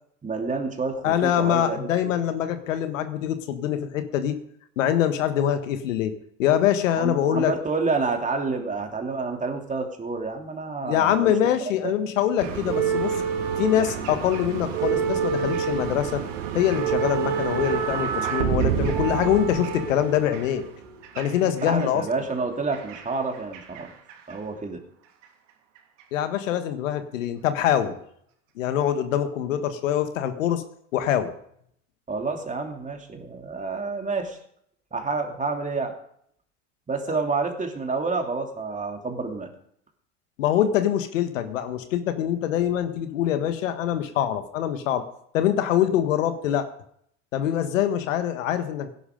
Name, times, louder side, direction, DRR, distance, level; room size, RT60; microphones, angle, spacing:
voice 1, 0.2-1.9 7.0-11.3 11.8-11.9 21.4-23.9 24.3-24.8 32.1-34.4 34.9-35.9 36.9-39.5, right 4 dB, 20° right, 3 dB, 3.0 m, -29 dB
voice 2, 1.0-4.4 4.8-6.1 6.4-7.5 10.8-13.2 13.6-16.2 16.5-20.7 21.1-22.0 26.1-28.0 28.6-30.6 30.9-31.3 37.1-37.2 40.4-45.0 45.3-46.7 47.3-48.9, left 10 dB, 80° left, 9 dB, 1.6 m, -24 dB
sound 1, 12.4-21.8 22.7-23.8 24.1-24.3 25.2-25.3, right 7 dB, 70° right, 3.2 m, -27 dB
17.0 x 11.0 x 5.2 m, 0.68 s
hypercardioid pair, 90°, 38 cm